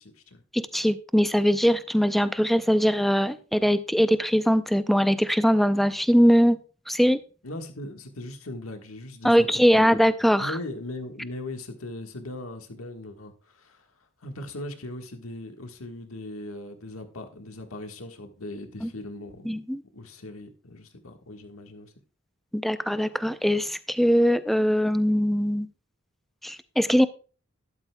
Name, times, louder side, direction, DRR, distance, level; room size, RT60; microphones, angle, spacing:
voice 1, 0.0-0.4 7.4-10.0 10.4-13.9 14.2-19.5 19.9-21.9, left 1 dB, 80° left, 5 dB, 1.5 m, -39 dB
voice 2, 0.5-6.6 6.9-7.2 9.2-10.6 18.8-18.9 19.5-19.8 22.5-25.7 26.4-27.1, equal, ahead, 12 dB, 0.5 m, -21 dB
12.5 x 11.5 x 2.3 m, 0.37 s
head